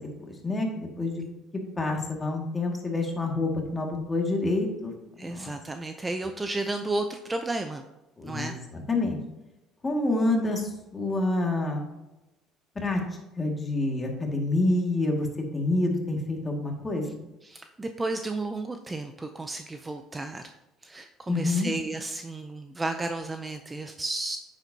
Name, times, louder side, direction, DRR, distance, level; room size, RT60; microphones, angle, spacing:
voice 1, 0.3-1.2 1.8-4.9 5.2-5.5 8.2-9.2 9.8-11.9 12.8-13.0 13.4-15.3 15.5-17.0 21.3-21.7, left 2 dB, 20° left, 1 dB, 2.0 m, -27 dB
voice 2, 5.2-7.8 8.2-8.6 17.4-20.4 20.8-24.4, right 2 dB, 15° right, 6 dB, 0.5 m, -33 dB
9.0 x 7.4 x 2.8 m, 0.99 s
cardioid pair, 105°, 0 cm